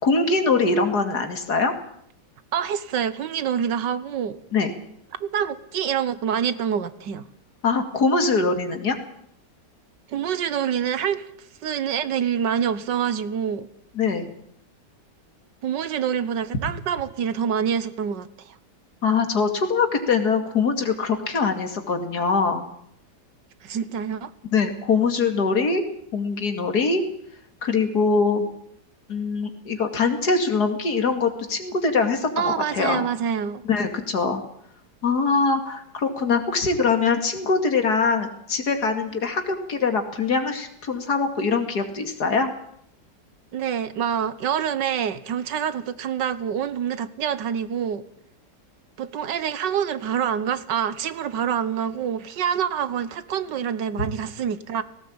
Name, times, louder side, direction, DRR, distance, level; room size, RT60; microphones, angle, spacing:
voice 1, 0.0-1.7 4.5-4.7 7.6-9.0 14.0-14.3 19.0-22.6 24.5-25.8 26.1-27.0 27.6-28.5 29.1-33.1 33.6-34.4 35.0-42.5, left 4 dB, 65° left, 2.8 m, -23 dB
voice 2, 2.5-4.4 5.2-7.3 10.1-11.3 11.6-13.7 15.6-18.6 23.6-24.3 32.4-33.6 43.5-48.0 49.0-54.8, right 8 dB, 90° right, 1.7 m, -26 dB
18.0 x 18.0 x 8.7 m
omnidirectional pair, 1.9 m